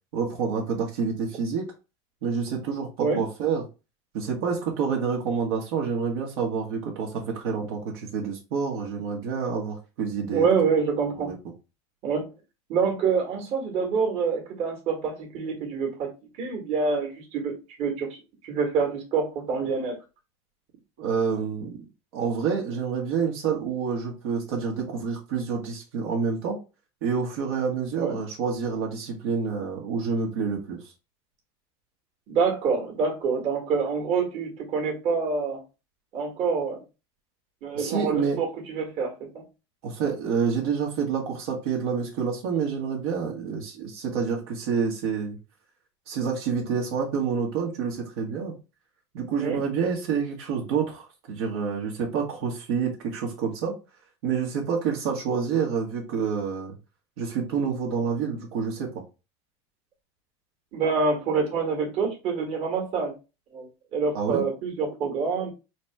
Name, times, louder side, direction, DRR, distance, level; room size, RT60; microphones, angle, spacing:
voice 1, 0.1-1.7 2.2-3.6 4.1-10.5 11.2-11.4 21.0-21.8 22.1-26.6 27.0-30.8 37.7-38.4 39.8-45.4 46.1-48.5 49.1-53.8 54.2-56.7 57.2-58.9 64.1-64.5, right 6 dB, 75° right, 1.5 m, -28 dB
voice 2, 10.3-11.3 12.0-12.3 12.7-16.1 16.4-17.5 17.8-19.9 27.9-28.2 32.3-35.6 36.1-36.8 37.6-39.4 49.4-49.6 60.7-63.1 63.5-65.5, right 5 dB, 50° right, 1.7 m, -26 dB
4.0 x 3.0 x 3.5 m
supercardioid pair, 130°, 14 cm